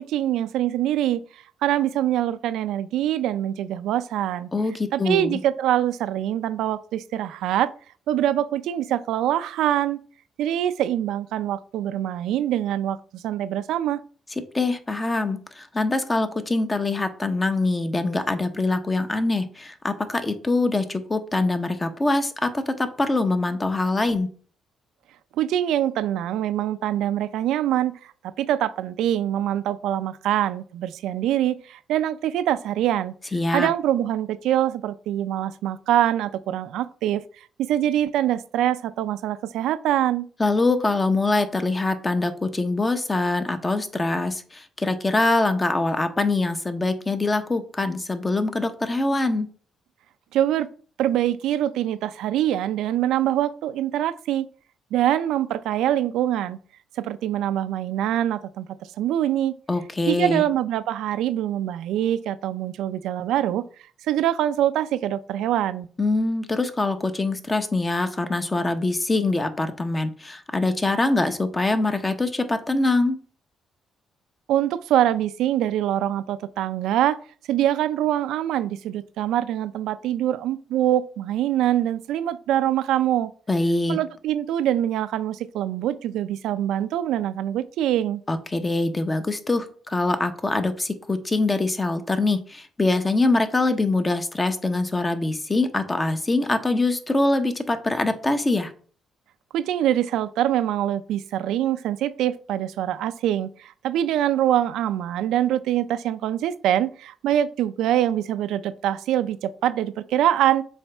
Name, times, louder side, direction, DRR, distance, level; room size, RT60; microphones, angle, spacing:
voice 1, 0.0-4.5 4.9-7.7 8.1-10.0 10.4-14.0 25.4-33.1 33.5-40.3 50.3-50.7 51.0-54.5 54.9-56.6 57.0-58.7 59.0-59.5 60.1-63.7 64.1-65.9 74.5-77.2 77.5-83.3 83.9-88.2 99.5-110.6, right 12 dB, 85° right, 0.4 m, -24 dB
voice 2, 4.5-5.4 14.5-24.3 33.3-33.7 40.4-49.5 59.7-60.4 66.0-73.2 83.5-84.0 88.3-98.7, left 2 dB, 25° left, 0.9 m, -24 dB
7.1 x 4.0 x 3.4 m
cardioid pair, 90°, 0 cm